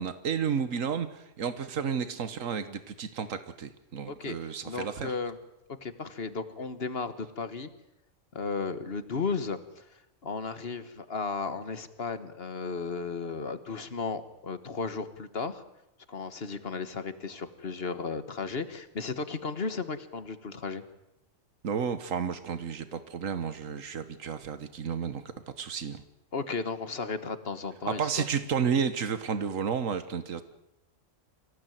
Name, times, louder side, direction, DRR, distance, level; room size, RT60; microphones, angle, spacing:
voice 1, 0.0-5.1 21.6-25.2 25.6-26.0 27.9-30.4, right 7 dB, 90° right, 11 dB, 1.6 m, -32 dB
voice 2, 4.0-5.4 5.8-7.7 8.3-15.6 16.1-20.8 26.3-28.3, left 4 dB, 50° left, 11 dB, 1.5 m, -35 dB
25.5 x 16.5 x 9.2 m, 0.89 s
omnidirectional pair, 1.3 m